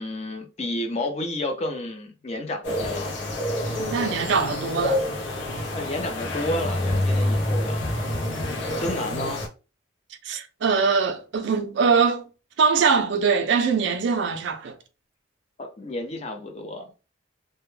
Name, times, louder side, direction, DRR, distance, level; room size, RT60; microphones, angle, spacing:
voice 1, 0.0-3.1 5.7-7.8 8.7-9.4 15.6-16.9, left 1 dB, 35° left, 0.5 m, -31 dB
sound 1, 2.6-9.5, left 1 dB, 65° left, 0.7 m, -27 dB
voice 2, 3.8-5.0 10.2-12.2 12.6-14.8, right 5 dB, 65° right, 0.4 m, -22 dB
2.1 x 2.1 x 3.1 m
head